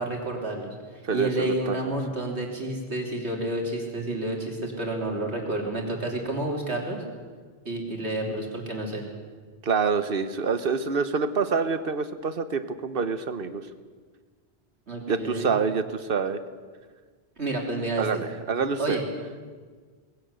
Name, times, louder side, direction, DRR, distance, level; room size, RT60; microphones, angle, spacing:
voice 1, 0.0-7.0 7.7-9.0 14.9-15.5 17.4-18.1 18.8-19.0, right 1 dB, 90° right, 0 dB, 3.7 m, -30 dB
voice 2, 1.0-1.9 9.6-13.6 15.1-16.4 18.0-19.0, right 5 dB, 60° right, 11 dB, 1.3 m, -27 dB
21.0 x 17.0 x 8.2 m, 1.5 s
omnidirectional pair, 1.1 m